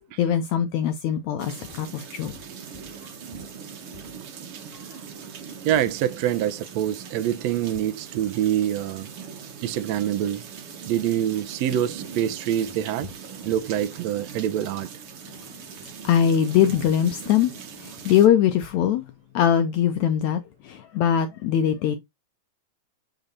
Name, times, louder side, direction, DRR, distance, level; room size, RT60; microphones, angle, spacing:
voice 1, 0.2-2.4 16.0-17.5 17.8-19.0 19.3-22.0, left 9 dB, 80° left, 1.7 m, -22 dB
sound 1, 1.4-18.3, right 7 dB, 60° right, 1.6 m, -40 dB
voice 2, 5.6-9.1 9.6-10.4 10.9-13.1 13.4-14.9, right 11 dB, 90° right, 1.4 m, -25 dB
8.0 x 3.9 x 4.0 m
omnidirectional pair, 4.0 m